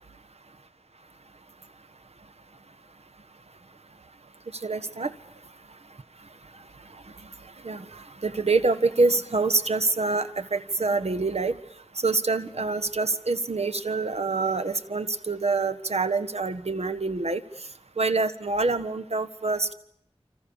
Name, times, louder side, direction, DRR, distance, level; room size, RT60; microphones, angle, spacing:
voice 1, 4.6-5.1 7.6-11.6 12.0-17.4 18.0-19.7, right 3 dB, 75° right, 11 dB, 1.4 m, -26 dB
29.0 x 25.5 x 7.2 m, 0.70 s
wide cardioid pair, 50°, 11 cm